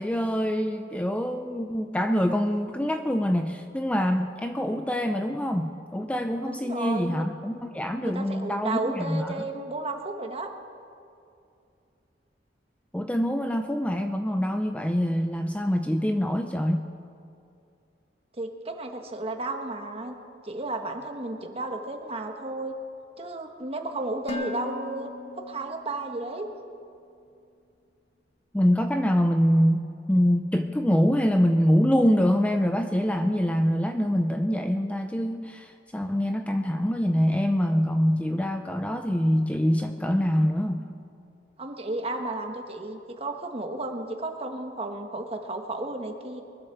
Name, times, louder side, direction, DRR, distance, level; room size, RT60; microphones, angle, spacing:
voice 1, 0.0-9.4 12.9-16.8 28.5-40.9, equal, 10° left, 7 dB, 0.4 m, -25 dB
voice 2, 6.4-7.2 8.0-10.5 18.4-20.2 20.4-22.7 23.2-25.1 25.5-26.5 41.6-46.4, right 2 dB, 35° right, 4 dB, 1.3 m, -33 dB
Dishes pots and pans, 24.3-26.3, left 2 dB, 35° left, 0.8 m, -37 dB
23.0 x 8.1 x 6.9 m, 2.6 s
head